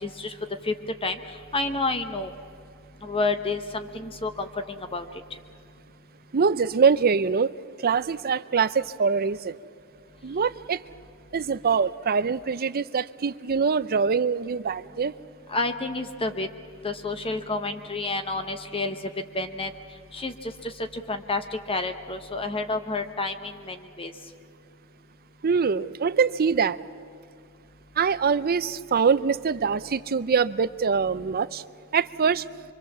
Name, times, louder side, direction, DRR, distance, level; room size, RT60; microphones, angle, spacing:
voice 1, 0.0-0.3 0.6-0.7 1.0-1.1 1.5-2.3 3.0-5.0 15.5-16.5 16.8-19.0 19.3-19.7 20.1-20.7 21.1-21.4 21.7-24.1, left 3 dB, 25° left, 8 dB, 1.0 m, -29 dB
voice 2, 6.3-7.5 7.8-9.6 10.2-10.8 11.3-15.1 25.4-26.8 28.0-31.6 31.9-32.4, right 5 dB, 45° right, 15 dB, 0.5 m, -24 dB
25.0 x 24.0 x 7.3 m, 2.4 s
head